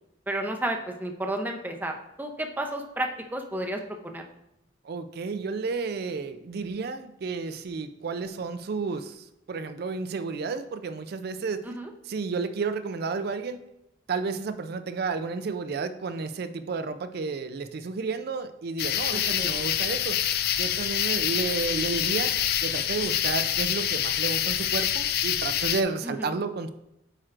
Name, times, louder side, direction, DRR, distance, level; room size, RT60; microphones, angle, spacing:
voice 1, 0.3-4.2 11.6-11.9 19.1-19.5 26.0-26.4, right 1 dB, 10° right, 3 dB, 0.6 m, -32 dB
voice 2, 4.8-11.6 12.1-13.6 14.1-20.2 20.6-22.3 22.6-26.7, right 4 dB, 60° right, 10 dB, 0.4 m, -31 dB
sound 1, 18.8-25.8, left 10 dB, 55° left, 0.4 m, -26 dB
8.8 x 4.4 x 2.5 m, 0.87 s
head